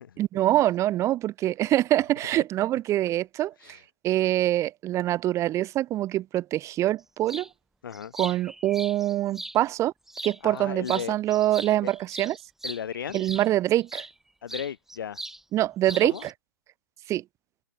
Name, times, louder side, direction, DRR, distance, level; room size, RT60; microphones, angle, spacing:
voice 1, 0.2-3.8 4.0-7.5 8.2-9.9 10.2-12.4 13.1-14.1 15.5-16.1 17.1-17.2, right 14 dB, 25° right, 1.1 m, -25 dB
sound 1, 7.3-7.5 7.9-9.6 10.1-10.6 10.9-14.1 14.5-15.4 15.7-16.3, right 1 dB, 5° right, 6.6 m, -39 dB
voice 2, 10.4-11.2 11.8-11.9 12.6-13.2 14.4-15.2 16.0-16.3, left 8 dB, 65° left, 2.0 m, -35 dB
hypercardioid pair, 120°, 12 cm